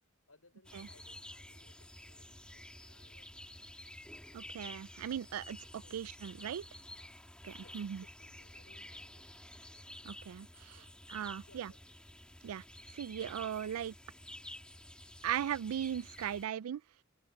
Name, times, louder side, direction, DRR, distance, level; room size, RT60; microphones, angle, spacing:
voice 1, 0.3-3.8 5.8-6.0 7.6-9.6 10.6-11.0 11.4-11.9, left 3 dB, 75° left, 5.4 m, -66 dB
sound 1, 0.6-16.5, left 1 dB, 5° left, 2.4 m, -51 dB
voice 2, 4.3-6.6 7.4-8.0 10.0-10.8 11.1-11.7 12.4-12.6 12.9-13.9 15.2-16.8, right 9 dB, 75° right, 0.3 m, -38 dB
open air
head